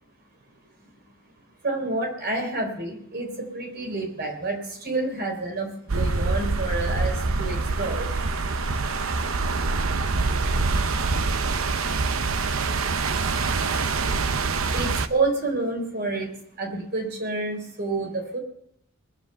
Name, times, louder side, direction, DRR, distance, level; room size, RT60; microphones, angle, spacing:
voice 1, 1.6-9.4 14.7-16.3 16.6-18.4, right 2 dB, 50° right, 3 dB, 3.9 m, -29 dB
sound 1, 5.9-15.1, right 3 dB, 75° right, 0.8 m, -25 dB
21.0 x 7.7 x 6.8 m, 0.71 s
head